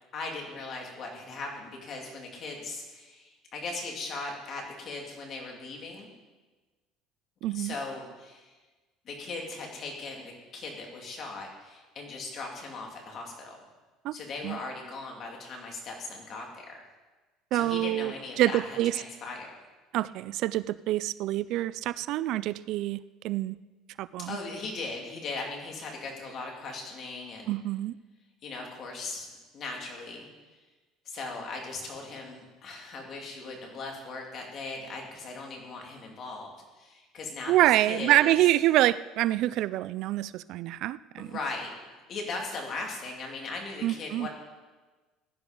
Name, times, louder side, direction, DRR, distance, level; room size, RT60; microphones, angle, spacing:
voice 1, 0.1-6.1 7.5-8.5 9.0-13.6 14.1-16.7 17.5-19.5 24.3-27.6 28.4-29.3 29.5-30.3 31.0-38.4 41.2-41.7 42.1-44.3, left 3 dB, 40° left, 0 dB, 3.1 m, -38 dB
voice 2, 7.4-7.7 14.0-14.2 14.4-14.6 17.5-19.0 19.9-23.6 24.0-24.4 27.5-27.9 37.5-41.3 43.8-44.3, right 15 dB, 55° right, 17 dB, 0.3 m, -26 dB
16.5 x 10.5 x 5.3 m, 1.3 s
cardioid pair, 150°, 0 cm